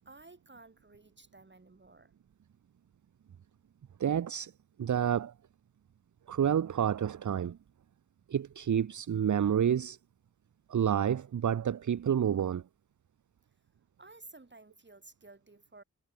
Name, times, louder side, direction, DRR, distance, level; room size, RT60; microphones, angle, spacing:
voice 1, 0.0-2.1 14.0-15.8, right 3 dB, 35° right, 3.7 m, -54 dB
voice 2, 4.0-4.5 4.8-5.3 6.3-7.6 8.3-10.0 10.7-12.6, right 9 dB, 60° right, 0.7 m, -29 dB
cardioid pair, 55°, 33 cm